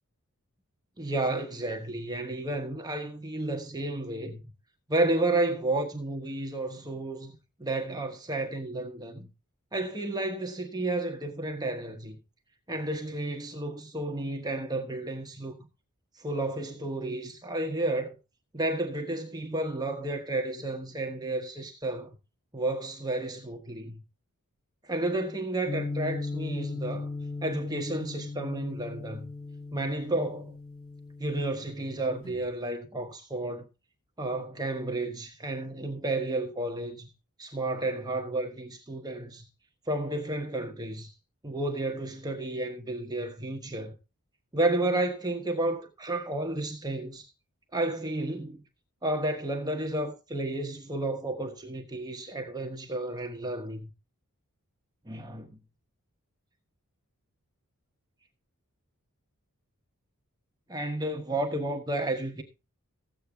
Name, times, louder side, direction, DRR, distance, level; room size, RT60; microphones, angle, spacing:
voice 1, 1.0-4.4 4.9-9.3 9.7-12.2 12.7-15.6 16.2-18.2 18.5-22.1 22.5-24.0 24.9-27.1 27.4-29.3 29.7-30.5 31.2-33.6 34.2-37.1 37.4-39.5 39.9-41.1 41.4-43.9 44.5-47.2 47.7-48.6 49.0-53.9 55.1-55.5 60.7-62.4, right 2 dB, 20° right, 1.2 m, -31 dB
sound 1, 25.7-32.5, left 3 dB, 65° left, 6.8 m, -37 dB
14.5 x 8.6 x 3.5 m
head